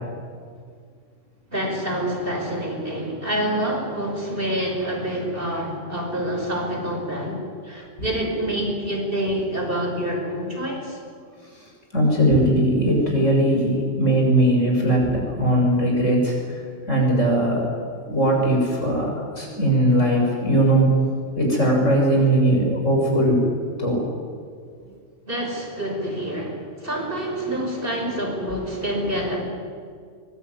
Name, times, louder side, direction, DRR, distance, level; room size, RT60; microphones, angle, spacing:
voice 1, 1.5-11.0 25.3-29.4, right 1 dB, 45° right, 1 dB, 5.9 m, -27 dB
voice 2, 11.9-16.3 16.9-17.6 18.1-20.9 21.4-23.4 23.8-24.0, right 1 dB, 80° left, -1 dB, 7.4 m, -19 dB
23.0 x 21.5 x 9.9 m, 2.1 s
omnidirectional pair, 1.3 m